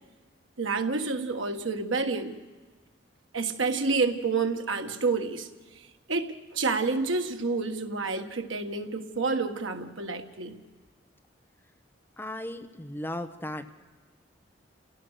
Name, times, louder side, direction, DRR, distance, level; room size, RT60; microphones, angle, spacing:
voice 1, 0.6-2.4 3.3-5.5 6.1-10.6, right 4 dB, 90° right, 6 dB, 1.6 m, -29 dB
voice 2, 12.2-13.7, left 1 dB, 10° left, 6 dB, 1.0 m, -36 dB
29.0 x 17.0 x 6.6 m, 1.4 s
head